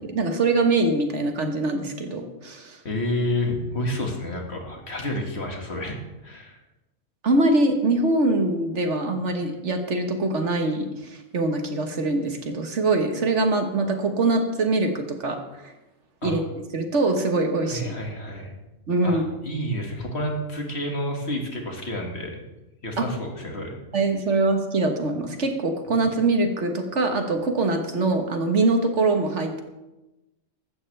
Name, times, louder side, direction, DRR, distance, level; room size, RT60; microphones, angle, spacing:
voice 1, 0.1-2.8 7.2-15.7 16.2-16.4 16.7-18.0 18.9-19.2 23.9-29.6, right 2 dB, 60° right, 5 dB, 1.6 m, -23 dB
voice 2, 2.8-6.0 6.2-6.6 16.2-16.4 17.7-18.5 19.0-22.4 22.8-23.8, left 1 dB, 50° left, 1 dB, 2.2 m, -29 dB
15.5 x 12.5 x 3.4 m, 1.0 s
omnidirectional pair, 1.4 m